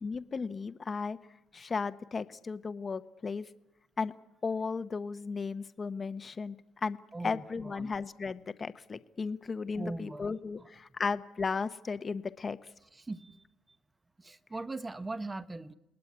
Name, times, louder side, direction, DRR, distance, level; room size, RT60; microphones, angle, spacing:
voice 1, 0.0-1.2 1.5-3.5 4.0-4.1 4.4-6.6 6.8-7.0 7.2-12.6, left 4 dB, 25° left, 11 dB, 0.9 m, -35 dB
voice 2, 7.1-7.9 9.8-10.3 10.6-10.7 12.9-13.4 14.2-15.7, right 2 dB, 15° right, 13 dB, 0.9 m, -40 dB
28.5 x 19.0 x 9.7 m, 1.0 s
cardioid pair, 115°, 0 cm